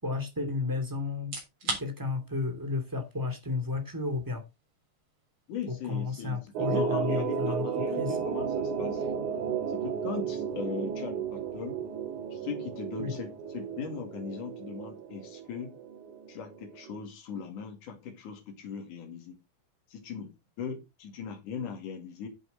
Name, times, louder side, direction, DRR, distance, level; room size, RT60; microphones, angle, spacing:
voice 1, 0.0-1.3 1.8-4.4 5.7-7.7 8.0-8.1 13.0-13.2, left 4 dB, 5° right, 2.2 m, -32 dB
sound 1, 1.2-16.0, right 3 dB, 40° right, 4.3 m, -47 dB
voice 2, 5.5-9.0 9.7-11.8 12.3-15.7 16.3-19.4 19.9-20.3 20.6-22.3, left 6 dB, 80° left, 3.8 m, -39 dB
sound 2, 6.6-17.0, right 7 dB, 80° right, 2.7 m, -33 dB
10.0 x 8.2 x 4.1 m
omnidirectional pair, 3.5 m